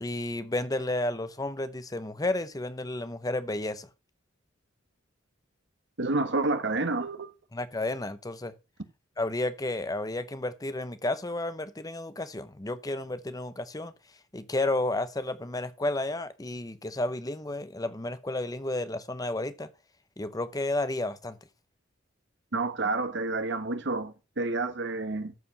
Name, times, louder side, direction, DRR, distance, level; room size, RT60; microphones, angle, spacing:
voice 1, 0.0-3.9 7.5-8.5 9.2-13.9 14.3-19.7 20.2-21.4, left 2 dB, 20° left, 0.8 m, -32 dB
voice 2, 6.0-7.3 22.5-25.3, right 3 dB, 60° right, 1.4 m, -29 dB
14.0 x 5.0 x 5.4 m
head